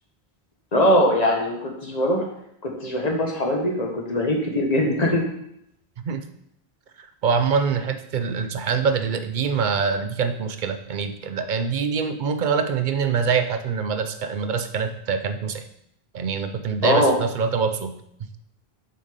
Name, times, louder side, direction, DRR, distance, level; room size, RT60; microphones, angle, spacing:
voice 1, 0.7-2.3 2.6-5.2 16.8-17.2, equal, 40° left, 0 dB, 1.4 m, -21 dB
voice 2, 7.2-15.6 16.1-18.0, right 6 dB, 55° right, 8 dB, 0.7 m, -24 dB
6.5 x 4.1 x 5.2 m, 0.74 s
omnidirectional pair, 1.0 m